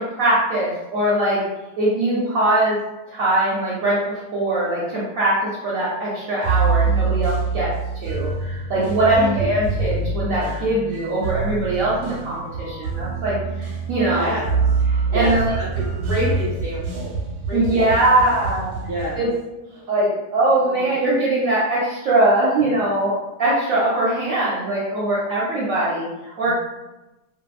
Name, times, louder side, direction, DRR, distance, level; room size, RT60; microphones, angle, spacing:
voice 1, 0.0-1.4 1.8-2.8 3.1-5.3 5.6-7.7 8.0-14.3 15.1-15.5 17.5-18.7 19.2-19.3 19.9-26.5, right 1 dB, 70° right, -7 dB, 0.9 m, -21 dB
sound 1, 6.4-19.2, right 4 dB, 90° right, 1.2 m, -25 dB
voice 2, 8.7-9.5 13.4-13.7 14.1-14.4 15.1-17.1 17.4-18.4 18.8-19.2 19.7-20.0 20.6-20.9 26.4-26.5, equal, 5° left, -10 dB, 1.2 m, -29 dB
2.7 x 2.2 x 2.3 m, 1.0 s
omnidirectional pair, 1.7 m